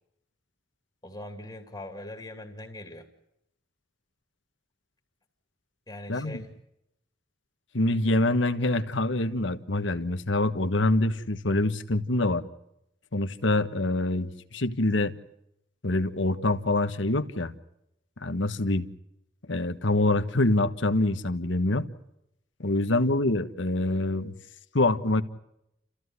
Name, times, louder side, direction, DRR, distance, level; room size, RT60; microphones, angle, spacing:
voice 1, 1.0-3.1 5.9-6.5 22.7-23.0, left 1 dB, 20° left, 3 dB, 2.5 m, -42 dB
voice 2, 6.1-6.4 7.7-12.4 13.1-15.1 15.8-17.5 18.2-18.9 19.5-21.9 22.6-24.3 24.7-25.2, left 2 dB, 70° left, 10 dB, 1.4 m, -25 dB
29.5 x 15.0 x 9.7 m, 0.83 s
head